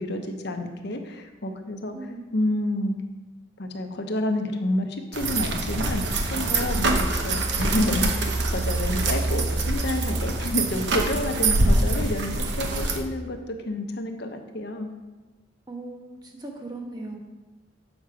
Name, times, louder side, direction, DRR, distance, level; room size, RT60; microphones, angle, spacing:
voice 1, 0.0-2.9 3.6-14.9, left 1 dB, 60° left, 4 dB, 0.9 m, -29 dB
voice 2, 1.9-2.3 11.3-11.9 15.7-17.2, right 3 dB, 20° right, 0 dB, 1.3 m, -38 dB
sound 1, 5.1-13.0, right 2 dB, 60° right, 0.9 m, -25 dB
7.3 x 6.2 x 4.9 m, 1.2 s
head